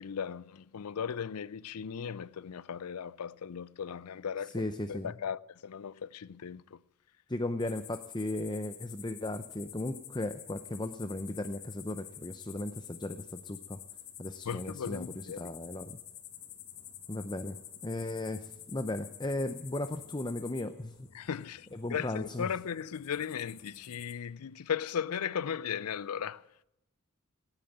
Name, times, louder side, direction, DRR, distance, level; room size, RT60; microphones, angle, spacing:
voice 1, 0.0-6.8 14.5-15.6 21.1-26.4, left 7 dB, 90° left, 0.5 m, -37 dB
voice 2, 4.5-5.1 7.3-13.8 14.2-16.0 17.1-17.6 17.8-20.9 21.7-22.5, left 1 dB, 20° left, 0.6 m, -36 dB
sound 1, 7.6-24.1, left 11 dB, 75° left, 2.0 m, -49 dB
18.0 x 9.0 x 9.0 m
head